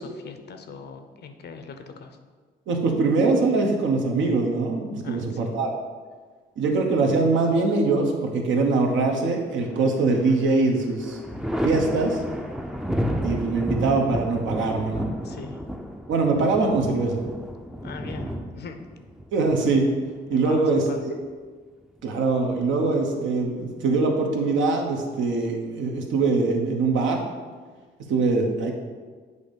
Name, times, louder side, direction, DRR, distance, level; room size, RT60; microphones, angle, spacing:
voice 1, 0.0-2.2 5.0-5.5 15.2-15.6 17.8-18.8 20.3-21.1, left 5 dB, 55° left, 7 dB, 0.7 m, -40 dB
voice 2, 2.7-5.8 6.6-11.2 11.6-12.2 13.2-15.1 16.1-17.2 19.3-19.9 20.3-21.1 22.0-27.2 28.1-28.7, right 3 dB, 75° right, 2 dB, 1.0 m, -23 dB
Thunder, 9.6-10.4 10.8-20.3 21.8-22.7, equal, 5° right, 0.5 m, -31 dB
8.0 x 2.7 x 5.2 m, 1.5 s
cardioid pair, 90°, 20 cm